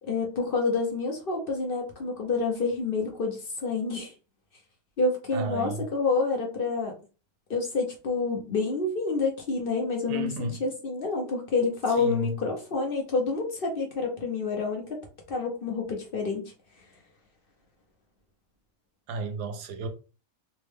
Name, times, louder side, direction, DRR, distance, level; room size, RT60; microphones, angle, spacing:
voice 1, 0.0-4.1 5.0-6.9 7.5-14.8 15.3-16.5, left 4 dB, 55° left, 0.6 m, -28 dB
voice 2, 5.3-5.9 10.1-10.6 12.0-12.4 19.1-19.9, right 2 dB, 75° right, 1.2 m, -32 dB
3.5 x 2.1 x 3.3 m
omnidirectional pair, 1.8 m